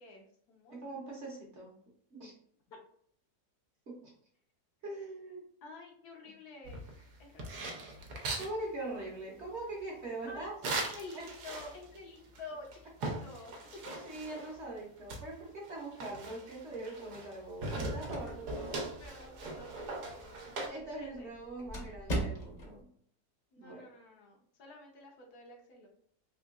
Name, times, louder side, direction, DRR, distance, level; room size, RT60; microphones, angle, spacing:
voice 1, 0.0-0.9 5.6-6.9 7.2-7.9 10.3-10.6 10.9-12.9 13.2-13.5 13.8-13.9 18.7-20.4 20.9-21.3 23.5-25.9, left 2 dB, 70° left, 0 dB, 1.3 m, -50 dB
voice 2, 0.7-1.8 2.1-2.4 3.9-4.1 4.8-5.4 8.4-10.5 11.1-11.3 14.0-18.9 20.7-22.8 23.6-23.9, right 2 dB, 50° right, -2 dB, 1.0 m, -42 dB
sound 1, 6.6-8.5 10.6-12.0 12.4-12.5 12.7-14.6 15.1-17.4 17.6-20.7, right 2 dB, 75° right, 1.3 m, -40 dB
sound 2, 17.6-22.8, right 1 dB, 35° left, 0.8 m, -42 dB
3.8 x 3.0 x 2.4 m, 0.63 s
omnidirectional pair, 1.7 m